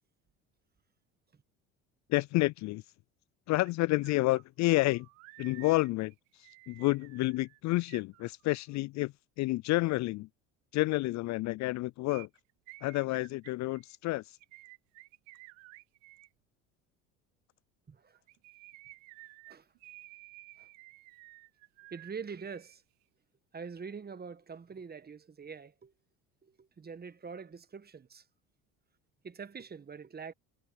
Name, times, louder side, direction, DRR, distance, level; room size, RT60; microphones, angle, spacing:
voice 1, 2.1-2.8 3.5-5.1 5.4-10.3 10.7-12.3 12.8-14.4, left 20 dB, 50° left, 0.4 m, -30 dB
sound 1, 3.6-3.7 4.0-8.8 12.1-16.3 18.1-22.8 23.0-23.1, right 26 dB, 80° right, 3.3 m, -54 dB
voice 2, 17.9-18.2 19.5-19.7 20.6-20.7 21.9-22.8 23.5-25.9 26.4-28.2 29.2-30.3, right 5 dB, 25° right, 1.5 m, -44 dB
hypercardioid pair, 70°, 37 cm